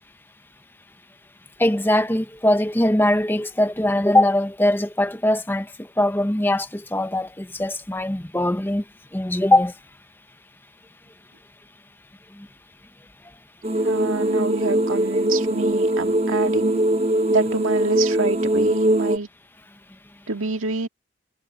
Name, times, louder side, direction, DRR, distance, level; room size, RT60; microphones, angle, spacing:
voice 1, 1.6-8.8 9.1-9.7 12.4-12.5, left 1 dB, 10° left, 0.8 m, -21 dB
sound 1, 13.6-19.2, right 1 dB, 30° right, 0.8 m, -21 dB
voice 2, 13.8-16.8 17.3-19.3 20.3-20.9, right 3 dB, 90° right, 1.9 m, -27 dB
head